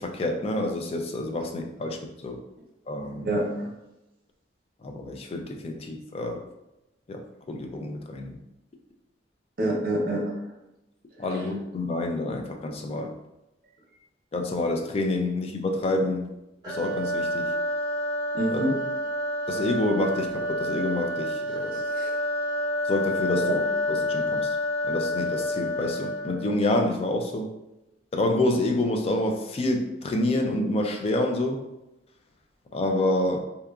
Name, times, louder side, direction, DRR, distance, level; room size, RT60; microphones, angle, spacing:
voice 1, 0.0-2.4 2.9-3.3 4.8-6.4 7.1-8.4 11.2-13.1 14.3-16.3 16.7-17.5 18.5-18.6 19.5-21.8 22.8-23.6 23.9-24.6 24.9-27.5 28.1-31.6 32.7-33.4, left 2 dB, 35° left, 3 dB, 0.3 m, -28 dB
voice 2, 3.2-3.7 9.6-10.4 11.3-11.4 18.4-18.7 21.7-22.1 23.4-23.5, right 1 dB, 55° right, -2 dB, 0.7 m, -27 dB
sound 1, 16.6-26.6, left 1 dB, 25° right, 0.8 m, -28 dB
2.8 x 2.3 x 2.3 m, 0.93 s
head